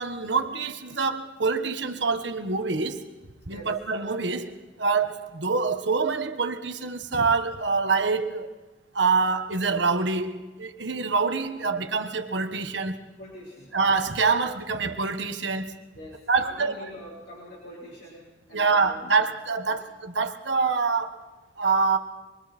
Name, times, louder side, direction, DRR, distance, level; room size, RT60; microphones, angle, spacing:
voice 1, 0.0-3.0 3.5-8.5 8.9-13.0 13.7-15.8 16.3-16.7 18.5-21.2 21.6-22.0, right 4 dB, 70° right, 1.4 m, -26 dB
voice 2, 13.2-13.7 16.0-19.2 19.7-19.8, equal, 60° left, 5.5 m, -44 dB
26.5 x 23.0 x 4.4 m
head